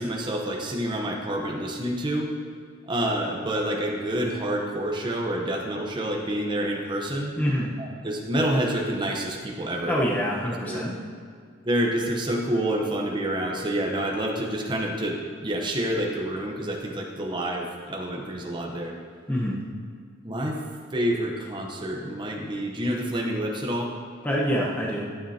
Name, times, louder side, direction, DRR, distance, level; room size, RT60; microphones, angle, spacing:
voice 1, 0.0-2.3 2.9-7.3 7.8-10.0 10.7-10.8 11.6-19.0 20.2-20.6 20.9-23.9, right 1 dB, 25° right, 0 dB, 0.8 m, -28 dB
voice 2, 7.4-7.7 9.9-11.0 19.3-19.6 24.2-25.1, equal, 10° left, -6 dB, 0.9 m, -26 dB
12.5 x 8.9 x 2.8 m, 2.1 s
head